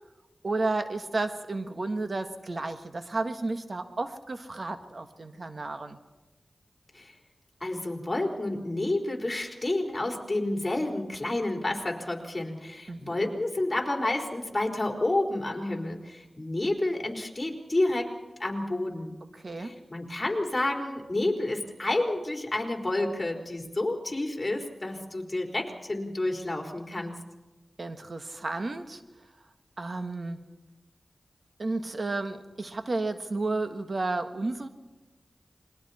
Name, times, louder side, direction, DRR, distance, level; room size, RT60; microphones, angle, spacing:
voice 1, 0.4-6.0 12.9-13.3 19.3-19.7 27.8-29.0 29.8-30.4 31.6-34.7, right 2 dB, 60° right, 8 dB, 1.6 m, -32 dB
voice 2, 7.6-18.1 18.4-19.2 19.6-27.2, left 2 dB, 30° left, 1 dB, 4.1 m, -30 dB
28.5 x 22.0 x 4.3 m, 1.1 s
cardioid pair, 45°, 0 cm